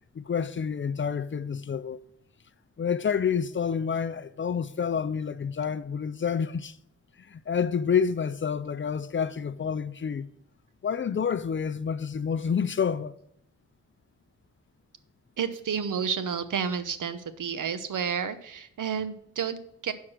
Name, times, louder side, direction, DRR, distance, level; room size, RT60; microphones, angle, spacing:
voice 1, 0.1-2.0 2.8-6.8 7.2-10.3 10.8-13.2, left 7 dB, 40° left, 0.4 m, -28 dB
voice 2, 15.4-19.9, right 7 dB, 80° right, 0.8 m, -31 dB
11.0 x 4.7 x 6.1 m
wide cardioid pair, 155°, 31 cm